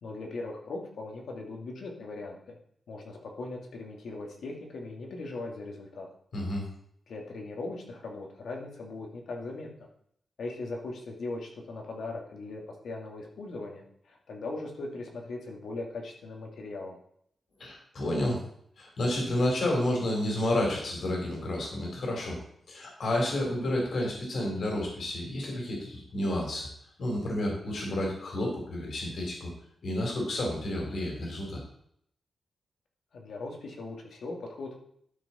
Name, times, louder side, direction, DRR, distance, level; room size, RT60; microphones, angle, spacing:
voice 1, 0.0-2.6 2.9-6.1 7.1-9.7 10.4-17.0 33.1-34.8, left 2 dB, 75° left, 1 dB, 2.2 m, -39 dB
voice 2, 6.3-6.6 17.6-18.4 18.8-22.4 22.7-26.7 27.0-29.5 29.8-31.6, left 1 dB, 60° left, 0 dB, 3.4 m, -30 dB
12.0 x 6.1 x 4.3 m, 0.68 s
wide cardioid pair, 145°, 0 cm